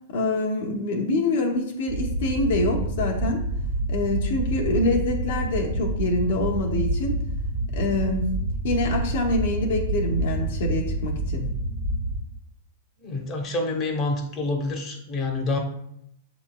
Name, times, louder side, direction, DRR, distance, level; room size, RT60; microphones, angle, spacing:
voice 1, 0.1-3.4 3.9-7.2 7.7-8.3 8.6-11.5, left 2 dB, 65° left, 0 dB, 0.8 m, -25 dB
sound 1, 1.9-12.2, right 1 dB, 25° right, 0.8 m, -28 dB
voice 2, 13.0-15.6, left 2 dB, 30° left, 3 dB, 0.9 m, -27 dB
7.0 x 3.0 x 2.2 m, 0.73 s
hypercardioid pair, 105°, 0 cm